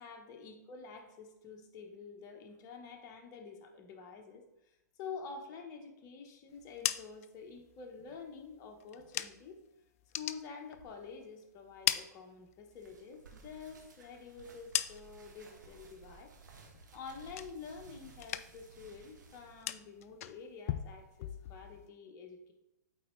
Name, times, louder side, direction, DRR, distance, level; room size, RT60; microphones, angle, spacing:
voice 1, 0.0-4.4 5.0-9.6 10.1-16.3 16.9-22.5, left 5 dB, 35° left, 3 dB, 1.1 m, -48 dB
sound 1, 6.5-9.6 9.9-11.3 11.6-12.9 13.2-15.4 15.7-16.2 16.6-17.9 18.1-18.8 19.0-21.9, left 12 dB, 50° left, 0.4 m, -40 dB
sound 2, 12.7-19.8, right 4 dB, 75° right, 1.3 m, -57 dB
8.5 x 4.1 x 3.2 m, 0.91 s
hypercardioid pair, 125°, 10 cm